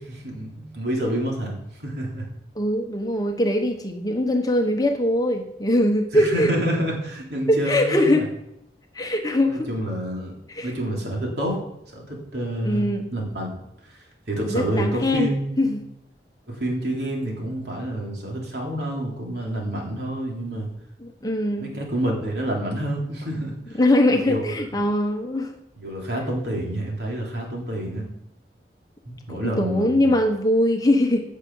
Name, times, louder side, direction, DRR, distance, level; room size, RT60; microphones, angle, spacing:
voice 1, 0.0-2.3 6.1-8.2 9.5-10.3 10.6-11.6 11.9-12.9 13.1-13.6 13.9-15.7 16.5-20.7 21.6-23.8 24.1-24.6 25.8-28.1 29.1-30.1, right 1 dB, 70° right, -1 dB, 3.4 m, -28 dB
voice 2, 2.5-6.5 7.5-8.3 8.9-9.7 10.5-10.7 12.6-13.1 14.5-15.3 15.6-15.8 21.0-21.7 23.8-25.5 29.3-31.3, left 1 dB, 20° left, 4 dB, 1.1 m, -22 dB
15.0 x 6.5 x 5.5 m, 0.81 s
head